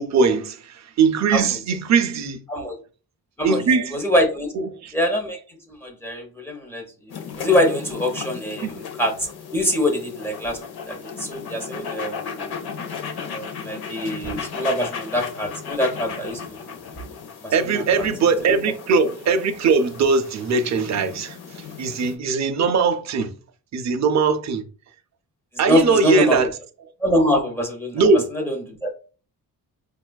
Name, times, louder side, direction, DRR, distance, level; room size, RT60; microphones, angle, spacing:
voice 1, 0.0-2.7 3.4-4.0 4.8-4.9 8.6-8.8 17.5-23.3 23.7-24.6 25.6-26.5 27.9-28.2, right 4 dB, 45° right, 0.5 m, -20 dB
voice 2, 3.9-4.5 4.9-5.4 5.7-6.8 7.4-9.1 9.5-10.6 10.9-12.5 13.2-16.8 17.4-18.1 18.4-18.6 25.6-26.5 27.0-28.9, equal, 5° left, 0.8 m, -24 dB
sound 1, 7.1-22.1, left 6 dB, 65° left, 0.7 m, -35 dB
5.3 x 2.3 x 2.2 m
wide cardioid pair, 140°, 41 cm